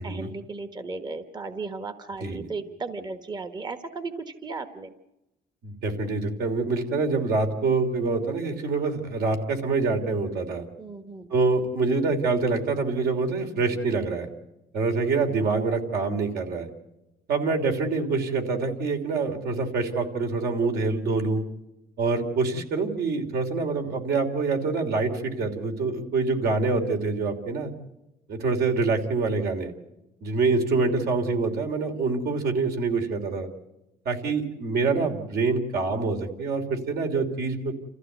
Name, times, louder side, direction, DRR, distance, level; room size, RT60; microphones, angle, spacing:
voice 1, 0.0-4.9 10.8-11.3, right 3 dB, 25° right, 9 dB, 1.2 m, -35 dB
voice 2, 5.6-10.6 11.3-14.3 14.7-16.7 17.3-21.4 22.0-27.7 28.3-29.7 30.2-33.5 34.0-37.8, right 4 dB, 70° right, 3 dB, 3.1 m, -26 dB
28.0 x 15.0 x 8.0 m, 0.96 s
cardioid pair, 110°, 17 cm